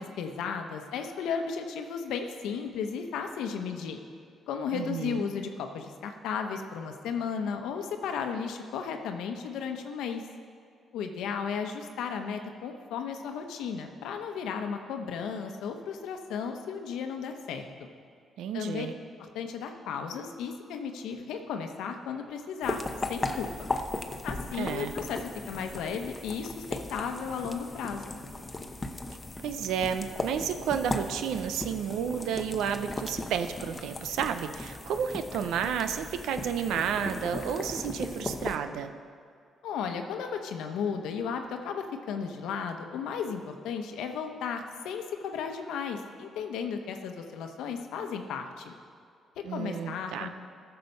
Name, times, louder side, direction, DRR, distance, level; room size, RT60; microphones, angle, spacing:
voice 1, 0.0-4.0 4.5-10.2 10.9-17.6 18.5-18.9 19.3-22.8 23.1-23.5 24.2-25.2 25.5-28.2 39.6-48.7 49.5-50.3, left 6 dB, 85° left, 5 dB, 0.9 m, -34 dB
voice 2, 4.7-5.3 18.4-18.9 24.6-24.9 29.4-38.9 49.4-50.3, right 8 dB, 85° right, 9 dB, 0.7 m, -31 dB
sound 1, 22.6-38.6, left 2 dB, 20° left, 0.8 m, -37 dB
14.0 x 6.8 x 5.4 m, 2.3 s
cardioid pair, 90°, 0 cm